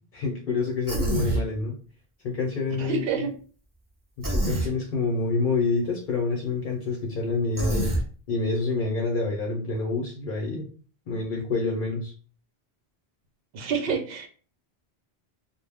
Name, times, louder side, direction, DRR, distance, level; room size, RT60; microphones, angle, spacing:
voice 1, 0.1-1.7 2.2-3.0 4.2-7.9 8.3-10.7 11.1-12.1, left 3 dB, 55° left, 0 dB, 0.7 m, -27 dB
Human voice, 0.9-1.4 4.2-4.7 7.6-8.0, right 1 dB, 25° right, 0.4 m, -26 dB
voice 2, 2.8-3.3 13.5-14.3, right 5 dB, 70° right, 3 dB, 0.8 m, -28 dB
2.2 x 2.0 x 3.3 m, 0.40 s
omnidirectional pair, 1.1 m